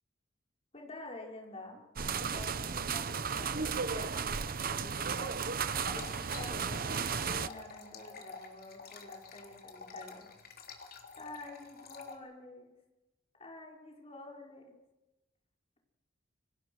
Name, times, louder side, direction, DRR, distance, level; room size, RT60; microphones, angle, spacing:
voice 1, 0.7-1.8 2.2-5.4 5.9-10.3 11.2-12.7 13.4-14.8, left 2 dB, 30° left, 0 dB, 5.6 m, -48 dB
sound 1, 2.0-7.5, right 6 dB, 50° right, 0.9 m, -34 dB
sound 2, 5.6-12.2, left 4 dB, 50° left, 3.7 m, -49 dB
29.5 x 25.0 x 6.4 m, 1.0 s
head